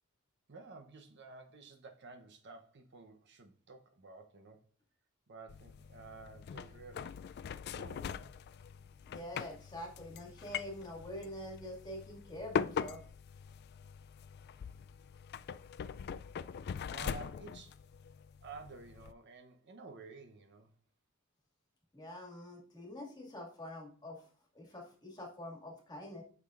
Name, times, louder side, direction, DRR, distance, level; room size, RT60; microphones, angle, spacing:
voice 1, 0.5-4.6 5.3-7.2 7.7-8.3 16.8-17.8 18.4-20.7, right 4 dB, 55° right, 0.8 m, -52 dB
sound 1, 5.5-19.1, left 7 dB, 50° left, 0.3 m, -42 dB
voice 2, 9.1-13.0 21.9-24.3 24.5-26.2, left 1 dB, 20° left, 2.0 m, -46 dB
8.9 x 5.9 x 2.5 m
head